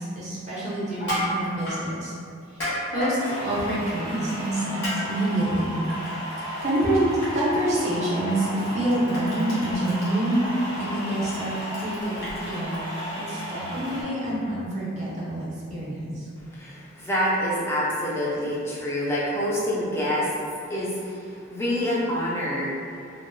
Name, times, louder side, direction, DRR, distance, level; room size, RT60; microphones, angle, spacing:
voice 1, 0.0-2.1 2.5-5.7 6.2-10.5 10.7-12.8 13.2-16.3, right 1 dB, 35° right, -8 dB, 0.6 m, -27 dB
Crushing, 0.9-1.8 2.4-3.2 4.3-4.5 4.8-5.0 5.3-6.4 6.8-6.9 7.2-7.3 8.3-8.4 8.6-12.8, left 1 dB, 55° left, 1.0 m, -32 dB
sound 1, 3.2-14.0, equal, 80° left, 1.2 m, -34 dB
voice 2, 16.5-20.3 20.7-22.7, equal, 10° left, -7 dB, 0.4 m, -26 dB
2.8 x 2.0 x 2.5 m, 2.4 s
head